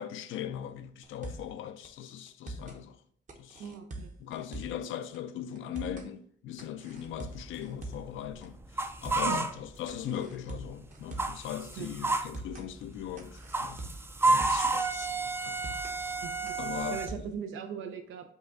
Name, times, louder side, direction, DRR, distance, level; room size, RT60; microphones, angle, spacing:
voice 1, 0.0-3.0 3.4-3.6 4.2-8.6 9.0-13.8 14.2-16.0 16.6-17.0, left 10 dB, 80° left, 0.4 m, -39 dB
sound 1, 1.0-1.6 1.8-1.9 2.3-2.8 3.3-4.9 5.1-5.2 5.6-6.1 6.6-8.1 8.4-8.5 8.8-9.4 9.9-11.4 11.7-11.8 12.1-12.7 13.2-14.7 15.0-15.1 15.4-16.0 16.5-17.4, right 2 dB, 40° right, 0.9 m, -43 dB
voice 2, 3.6-4.1 9.2-9.5 11.8-12.0 16.2-16.6 16.9-18.3, right 7 dB, 85° right, 0.6 m, -39 dB
sound 2, 7.1-10.3 10.6-17.1, right 3 dB, 10° right, 0.3 m, -31 dB
5.4 x 2.3 x 3.9 m
cardioid pair, 90°, 20 cm